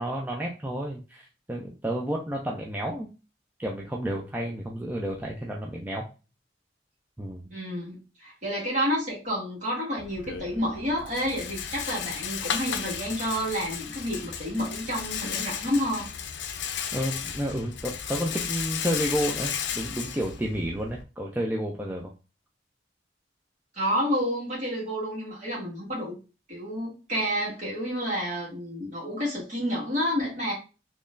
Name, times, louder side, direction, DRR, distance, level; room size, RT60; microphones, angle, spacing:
voice 1, 0.0-3.1 3.6-6.1 7.2-7.5 16.9-22.1, equal, 10° right, -1 dB, 0.4 m, -31 dB
voice 2, 7.5-16.1 23.7-26.2 26.5-30.5, equal, 40° right, -5 dB, 1.8 m, -29 dB
Rattle, 10.0-21.0, left 7 dB, 80° left, 0.5 m, -34 dB
3.9 x 3.0 x 2.5 m, 0.32 s
head